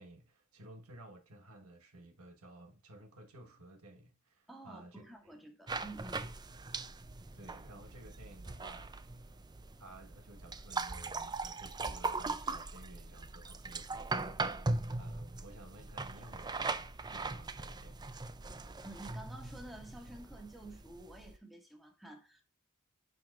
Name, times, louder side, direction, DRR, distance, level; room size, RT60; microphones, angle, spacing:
voice 1, 0.0-5.0 7.3-8.9 9.8-18.1, right 1 dB, 80° right, 1.6 m, -54 dB
voice 2, 4.5-6.3 18.8-22.4, right 2 dB, ahead, 1.7 m, -50 dB
sound 1, 5.7-21.4, right 3 dB, 20° right, 0.5 m, -40 dB
10.5 x 4.7 x 2.5 m
head